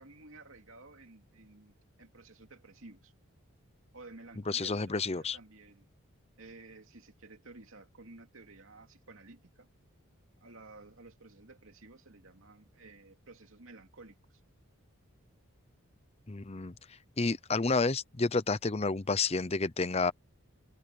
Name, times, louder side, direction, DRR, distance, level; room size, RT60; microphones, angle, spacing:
voice 1, 0.0-1.7 2.0-3.1 3.9-5.9 6.4-9.7 10.4-14.4, right 3 dB, 70° right, 2.7 m, -53 dB
voice 2, 4.5-5.4 16.3-16.7 17.2-20.1, left 3 dB, 30° left, 0.7 m, -30 dB
head